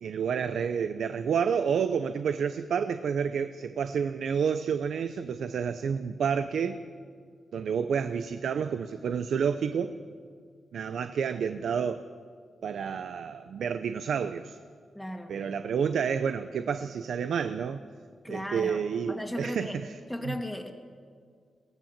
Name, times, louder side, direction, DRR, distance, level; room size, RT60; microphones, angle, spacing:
voice 1, 0.0-6.8 7.5-10.0 10.7-12.1 12.6-14.6 15.3-17.8 18.3-19.9 20.2-20.3, right 7 dB, 80° right, 10 dB, 0.7 m, -29 dB
voice 2, 14.9-15.3 18.2-18.8 19.1-19.8 20.1-20.7, left 1 dB, 5° left, 1 dB, 2.1 m, -36 dB
22.5 x 17.5 x 7.4 m, 2.1 s
cardioid pair, 90°, 0 cm